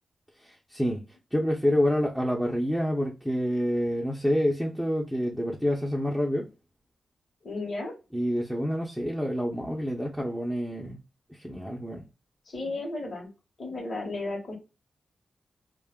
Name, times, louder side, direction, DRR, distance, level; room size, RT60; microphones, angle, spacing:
voice 1, 0.4-1.0 1.3-6.5 8.1-11.0 11.3-12.0, equal, 5° right, 0.6 m, -27 dB
voice 2, 7.4-7.9 12.5-13.3 13.6-14.5, left 2 dB, 55° left, 1.0 m, -34 dB
2.2 x 2.1 x 3.5 m
cardioid pair, 85°, 0 cm